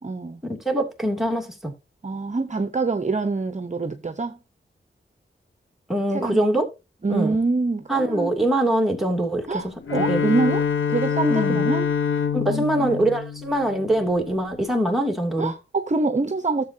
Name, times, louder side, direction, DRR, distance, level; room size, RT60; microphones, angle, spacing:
voice 1, 0.0-0.4 2.0-4.4 6.1-6.4 7.0-8.3 9.5-11.9 12.5-13.0 15.4-16.6, right 3 dB, 35° right, 0.9 m, -25 dB
voice 2, 0.6-1.7 5.9-6.6 7.1-7.4 7.9-9.6 10.1-10.2 11.3-11.7 12.3-15.5, right 1 dB, ahead, 2.8 m, -23 dB
Bowed string instrument, 9.8-14.2, left 7 dB, 80° left, 1.1 m, -25 dB
13.0 x 7.5 x 2.8 m
cardioid pair, 60°, 20 cm